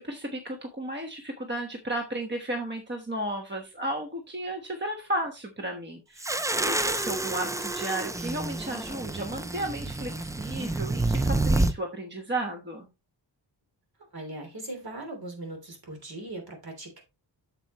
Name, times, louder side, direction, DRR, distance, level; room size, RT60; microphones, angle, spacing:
voice 1, 0.0-6.3 6.6-12.9, right 1 dB, 25° right, 1.2 m, -34 dB
sound 1, 6.2-11.7, right 2 dB, 10° right, 0.3 m, -28 dB
voice 2, 14.1-17.0, right 2 dB, 55° right, 3.2 m, -39 dB
8.2 x 7.0 x 3.0 m
wide cardioid pair, 130°, 44 cm